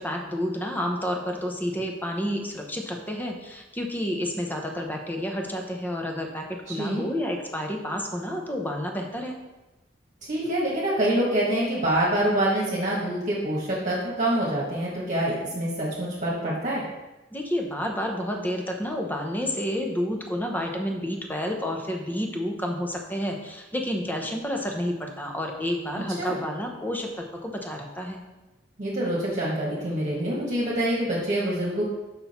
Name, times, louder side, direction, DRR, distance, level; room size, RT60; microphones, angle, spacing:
voice 1, 0.0-9.4 17.3-28.2, equal, 10° left, 2 dB, 0.9 m, -30 dB
voice 2, 6.7-7.1 10.3-16.8 26.2-26.4 28.8-31.8, right 1 dB, 40° right, -6 dB, 1.5 m, -26 dB
6.2 x 5.8 x 4.3 m, 1.1 s
head